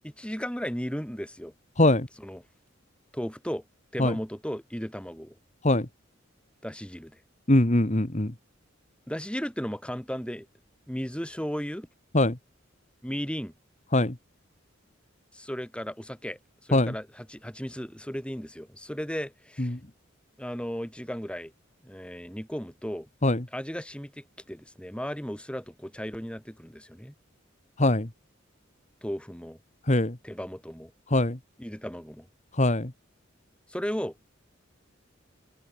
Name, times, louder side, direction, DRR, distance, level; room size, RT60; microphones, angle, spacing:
voice 1, 0.0-1.5 2.2-2.4 3.1-3.6 3.9-5.4 6.6-7.2 9.1-10.5 10.9-11.9 13.0-13.5 15.3-19.8 20.4-21.5 21.8-23.1 23.5-27.1 29.0-29.6 30.2-30.9 31.6-32.3 33.7-34.1, equal, 5° left, 7.2 m, -35 dB
voice 2, 1.8-2.1 4.0-4.2 5.6-5.9 7.5-8.3 12.1-12.4 13.9-14.2 16.7-16.9 19.6-19.8 23.2-23.4 27.8-28.1 29.9-30.2 31.1-31.4 32.5-32.9, left 1 dB, 35° left, 1.8 m, -22 dB
head